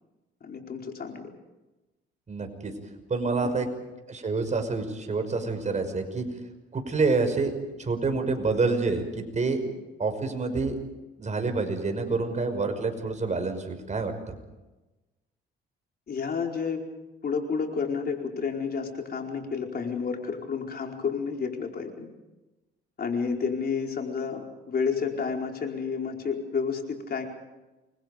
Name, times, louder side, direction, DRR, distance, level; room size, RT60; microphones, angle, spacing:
voice 1, 0.4-1.3 3.4-3.5 16.1-16.8 17.2-22.1 23.0-27.3, left 5 dB, 50° left, 2 dB, 4.6 m, -30 dB
voice 2, 2.3-2.7 3.1-3.7 4.1-6.2 6.7-7.5 7.8-9.6 10.0-10.8 11.2-14.3, right 3 dB, 35° right, 6 dB, 5.9 m, -27 dB
29.0 x 24.0 x 5.3 m, 1.1 s
cardioid pair, 90°, 20 cm